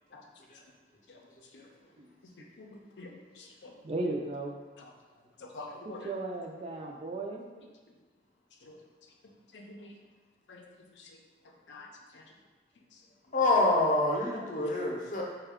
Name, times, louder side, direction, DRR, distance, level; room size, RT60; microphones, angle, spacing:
voice 1, 2.4-3.7 4.8-4.9 5.4-6.1 7.6-7.7 8.6-8.8 9.5-10.0 10.5-10.6 10.9-11.2 11.7-12.3 12.9-13.0 14.3-14.5, left 3 dB, 90° left, 1 dB, 0.5 m, -48 dB
voice 2, 3.8-4.6 6.0-7.5, right 2 dB, 35° right, 1 dB, 0.4 m, -35 dB
voice 3, 13.3-15.2, left 2 dB, 45° left, -1 dB, 0.6 m, -26 dB
4.1 x 2.2 x 3.5 m, 1.4 s
head